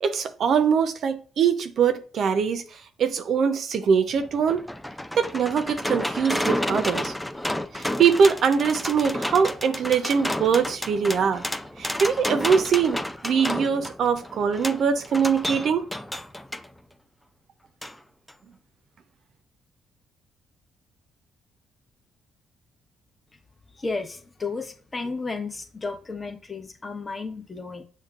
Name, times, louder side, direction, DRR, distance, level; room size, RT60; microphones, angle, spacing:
voice 1, 0.0-2.6 3.0-4.6 5.1-7.1 7.7-11.4 11.8-13.0 13.2-15.8, right 6 dB, 60° right, 0.5 m, -22 dB
sound 1, 4.1-16.7 17.8-17.9 18.3-18.4, left 1 dB, 10° left, 0.4 m, -31 dB
voice 2, 23.7-27.8, left 3 dB, 30° left, 0.8 m, -33 dB
6.3 x 2.1 x 2.4 m
hypercardioid pair, 50°, 0 cm